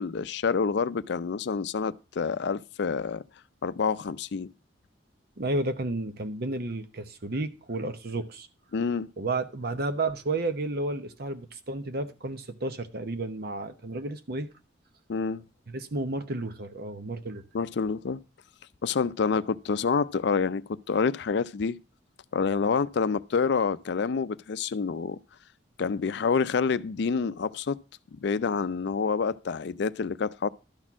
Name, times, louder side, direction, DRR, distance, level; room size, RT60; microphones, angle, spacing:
voice 1, 0.0-3.2 3.6-4.5 8.7-9.1 15.1-15.4 17.5-18.2 18.8-21.8 22.3-25.2 25.8-27.8 28.2-30.5, left 5 dB, 65° left, 0.4 m, -27 dB
voice 2, 5.4-8.5 9.2-14.5 15.7-17.4, right 2 dB, 55° right, 0.9 m, -32 dB
12.0 x 4.3 x 6.0 m
head